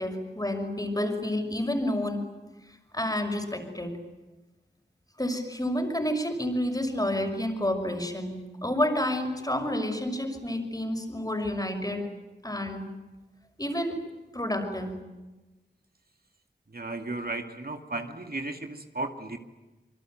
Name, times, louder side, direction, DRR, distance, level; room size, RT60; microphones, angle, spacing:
voice 1, 0.0-2.2 2.9-4.0 5.2-12.1 12.4-12.9 13.6-14.0 14.3-15.0, left 1 dB, 20° left, 5 dB, 5.9 m, -29 dB
voice 2, 16.7-19.4, right 2 dB, 60° right, 5 dB, 2.3 m, -35 dB
26.5 x 24.0 x 9.2 m, 1.1 s
wide cardioid pair, 60°, 18 cm